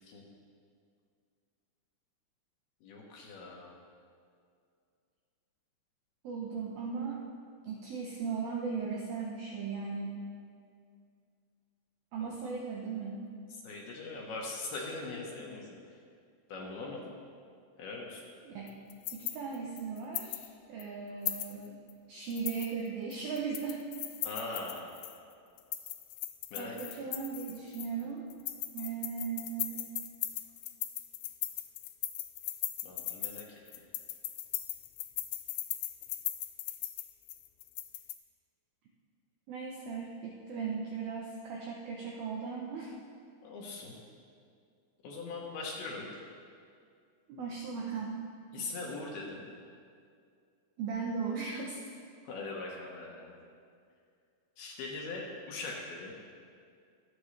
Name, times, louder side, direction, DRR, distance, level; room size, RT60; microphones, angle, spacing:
voice 1, 2.8-3.7 12.2-12.3 13.6-15.7 16.5-17.1 17.8-18.2 24.2-24.9 26.5-26.8 32.8-33.4 43.4-44.0 45.0-46.1 48.5-49.4 52.3-53.3 54.6-56.1, left 3 dB, 65° left, -2 dB, 2.8 m, -41 dB
voice 2, 6.2-7.2 7.6-10.2 12.1-13.2 18.4-18.8 19.1-21.8 22.1-23.8 26.6-28.3 28.7-29.9 39.5-42.9 47.3-48.3 48.6-48.7 50.8-51.8, right 5 dB, 80° right, -1 dB, 2.2 m, -37 dB
sound 1, 18.7-20.5 20.8-20.9 21.3-21.9 22.3-25.2 25.6-28.0 28.3-38.2, left 14 dB, 80° left, 2.5 m, -38 dB
24.5 x 8.8 x 3.3 m, 2.3 s
omnidirectional pair, 5.5 m